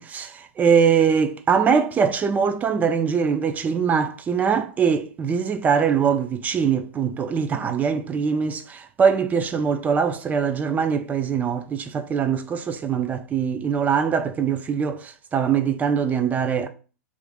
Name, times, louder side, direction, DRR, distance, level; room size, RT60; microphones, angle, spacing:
voice 1, 0.0-16.7, right 6 dB, 20° right, 0.3 m, -22 dB
3.0 x 2.4 x 3.4 m
hypercardioid pair, 115°, 8 cm